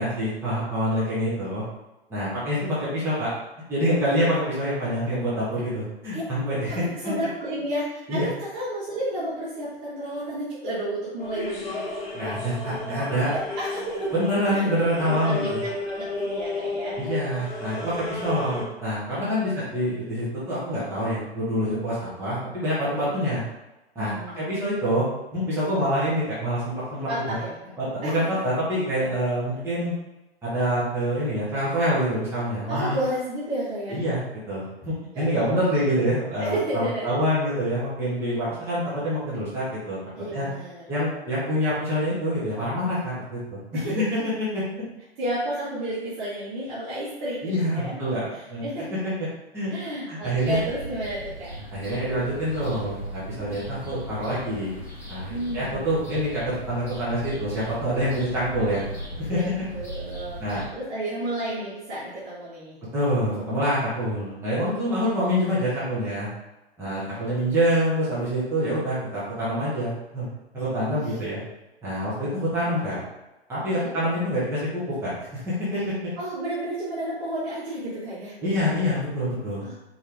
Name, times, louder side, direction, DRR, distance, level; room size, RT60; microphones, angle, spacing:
voice 1, 0.0-1.6 2.1-3.3 3.7-6.8 8.1-8.3 12.1-13.3 14.1-15.6 17.0-23.4 23.9-25.1 25.3-27.1 27.8-29.9 30.4-32.9 33.9-34.2 34.5-40.0 40.3-40.5 40.9-44.0 44.5-44.6 47.4-48.6 49.5-49.7 50.1-50.6 51.7-54.7 55.1-58.8 59.2-59.4 60.4-60.6 62.9-66.3 66.8-70.3 70.5-71.4 71.8-73.0 73.5-75.9 78.4-79.6, equal, 10° right, -10 dB, 1.4 m, -26 dB
voice 2, 6.7-11.8 13.3-14.1 14.5-14.7 15.1-17.0 19.3-19.7 23.0-23.3 24.0-24.6 27.1-27.5 28.0-28.2 32.7-34.0 35.1-36.0 36.4-37.2 40.2-40.8 43.7-44.0 45.2-48.0 48.3-48.9 49.7-51.5 55.3-55.8 59.3-62.8 66.8-67.2 70.9-71.0 73.7-73.9 76.2-78.3 79.6-79.7, right 1 dB, 30° right, -10 dB, 1.5 m, -32 dB
sound 1, 11.2-18.6, left 2 dB, 45° left, 1.2 m, -33 dB
sound 2, 50.2-60.7, equal, 10° left, 1.0 m, -37 dB
4.7 x 3.2 x 3.4 m, 1.0 s
figure-of-eight pair, 115°, 32 cm